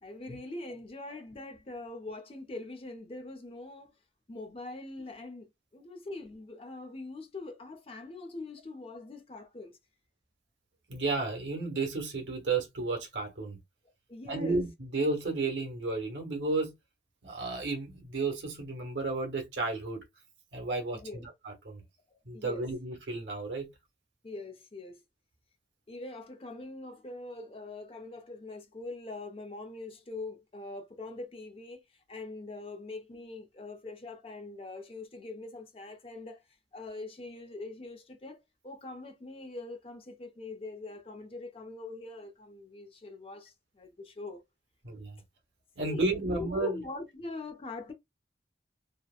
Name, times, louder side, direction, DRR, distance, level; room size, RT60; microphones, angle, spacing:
voice 1, 0.0-3.9 4.3-9.8 14.1-14.6 20.9-21.2 22.3-22.7 24.2-25.0 25.9-31.8 32.1-36.4 36.7-44.4 45.8-47.9, left 2 dB, 30° left, 0.4 m, -43 dB
voice 2, 10.9-13.6 14.2-16.7 17.2-20.0 20.5-21.8 22.3-23.7 44.8-45.2 45.8-46.8, right 3 dB, 90° right, 0.9 m, -32 dB
2.8 x 2.0 x 2.3 m
head